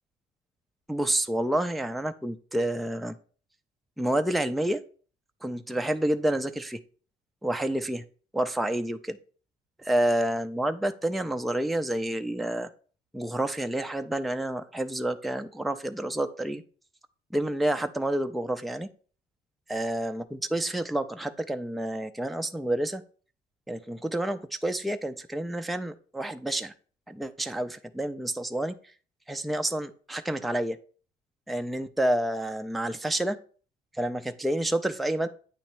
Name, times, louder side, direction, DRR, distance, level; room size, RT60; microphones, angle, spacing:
voice 1, 0.9-3.1 4.0-4.8 5.4-6.8 7.4-8.0 8.3-9.2 9.8-12.7 13.1-16.6 17.3-18.9 19.7-23.0 23.7-26.7 27.1-28.7 29.3-30.8 31.5-33.4 34.0-35.3, right 1 dB, ahead, 7 dB, 0.4 m, -29 dB
8.9 x 3.1 x 4.5 m, 0.41 s
cardioid pair, 110°, 17 cm